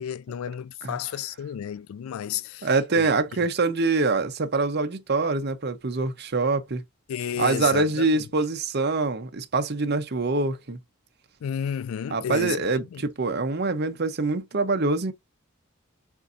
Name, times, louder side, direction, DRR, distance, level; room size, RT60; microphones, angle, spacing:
voice 1, 0.0-2.7 3.0-3.1 7.1-8.3 11.4-12.6 12.9-13.1, left 8 dB, 85° left, 0.3 m, -32 dB
voice 2, 2.6-6.8 7.4-10.8 12.1-15.1, right 3 dB, 50° right, 0.8 m, -25 dB
7.0 x 2.6 x 2.6 m
head